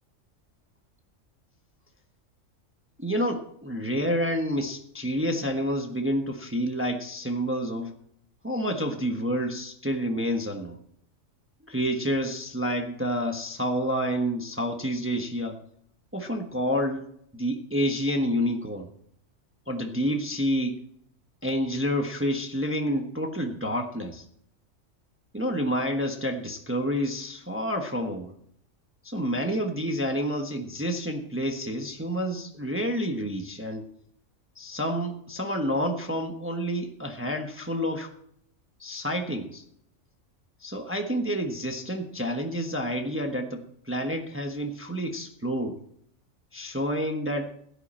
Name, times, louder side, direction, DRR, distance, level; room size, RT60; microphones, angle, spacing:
voice 1, 3.0-7.9 8.4-10.8 11.7-15.6 16.1-17.1 17.3-18.9 19.7-20.8 21.4-24.2 25.3-28.3 29.0-33.9 34.6-38.1 38.8-39.6 40.6-45.8 46.5-47.5, equal, 10° right, 4 dB, 1.1 m, -29 dB
16.5 x 10.5 x 4.3 m, 0.68 s
omnidirectional pair, 1.3 m